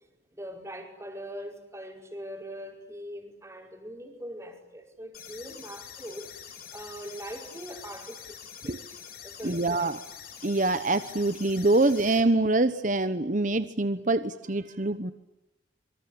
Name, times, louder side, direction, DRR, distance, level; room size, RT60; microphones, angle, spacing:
voice 1, 0.3-9.9, equal, 15° right, 3 dB, 5.3 m, -42 dB
sound 1, 5.1-12.2, left 8 dB, 55° left, 5.4 m, -45 dB
voice 2, 9.4-10.0 10.4-15.1, right 2 dB, 40° right, 11 dB, 1.1 m, -25 dB
26.5 x 24.5 x 8.9 m, 0.97 s
head